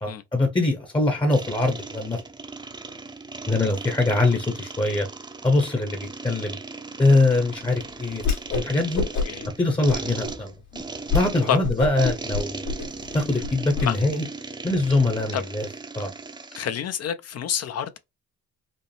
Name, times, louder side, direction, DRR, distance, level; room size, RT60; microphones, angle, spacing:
voice 1, 0.0-2.2 3.4-5.1 5.4-6.6 7.0-8.2 8.5-9.1 9.6-10.5 11.1-12.7 13.1-14.2 14.6-15.7 15.9-16.1, left 2 dB, 15° left, 0.8 m, -23 dB
sound 1, 1.3-16.7, right 3 dB, 15° right, 0.6 m, -37 dB
Whoosh swoosh swish, 8.2-8.7 8.9-9.5 9.8-10.3 10.7-10.8 11.1-11.3 11.6-13.9, left 4 dB, 80° left, 2.4 m, -27 dB
voice 2, 16.6-18.0, left 9 dB, 55° left, 0.6 m, -27 dB
5.2 x 2.0 x 3.3 m
cardioid pair, 90°, 30 cm